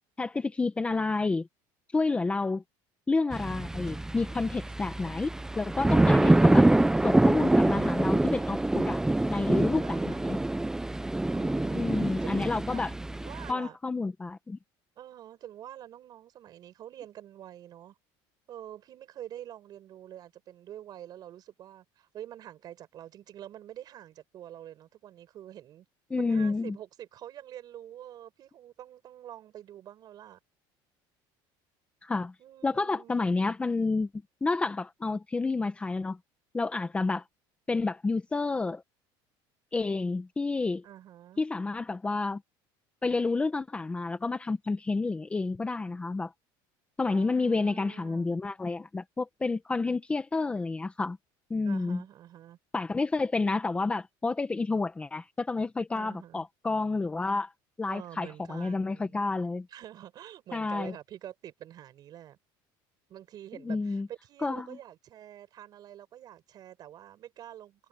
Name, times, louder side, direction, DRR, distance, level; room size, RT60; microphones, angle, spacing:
voice 1, 0.2-1.5 1.9-2.6 3.1-5.3 5.6-6.7 7.0-9.0 9.3-10.4 11.7-12.9 13.5-14.6 26.1-26.8 32.0-32.3 32.6-34.1 34.4-36.2 36.5-37.2 37.7-38.8 39.7-40.8 41.4-42.4 43.0-46.3 47.0-51.2 51.5-52.0 52.7-57.5 57.8-59.7 60.5-60.9 63.6-64.1 64.4-64.8, left 3 dB, 10° left, 1.0 m, -29 dB
sound 1, 3.3-13.5, right 2 dB, 5° right, 0.6 m, -25 dB
voice 2, 9.8-10.4 11.3-12.1 12.6-13.8 15.0-17.9 18.5-25.8 26.2-30.4 32.4-33.3 40.8-41.4 47.1-48.3 51.6-52.6 55.9-56.4 57.9-59.2 59.7-62.4 63.1-67.9, right 11 dB, 40° right, 4.9 m, -47 dB
cardioid pair, 155°, 10 cm